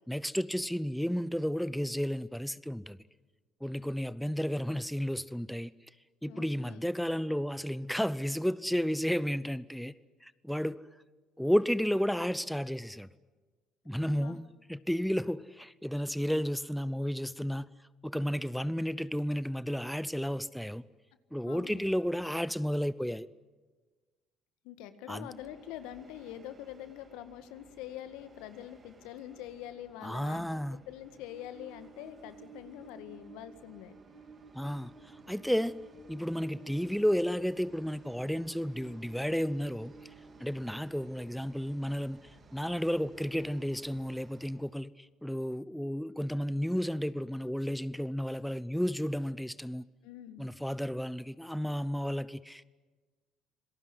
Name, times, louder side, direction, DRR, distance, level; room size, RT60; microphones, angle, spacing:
voice 1, 0.0-3.0 3.6-5.7 6.2-9.9 10.2-10.8 11.4-13.1 13.9-17.7 18.0-20.8 21.3-23.3 25.1-25.3 30.0-30.8 34.5-35.8 36.1-39.9 40.4-49.8 50.4-52.6, equal, ahead, 0.7 m, -32 dB
voice 2, 6.3-6.8 14.0-14.4 21.5-21.8 24.6-33.9 50.0-50.4, left 11 dB, 75° left, 1.7 m, -45 dB
Train, 25.2-44.7, right 3 dB, 40° right, 3.4 m, -55 dB
26.5 x 18.5 x 9.8 m
hypercardioid pair, 60°, 0 cm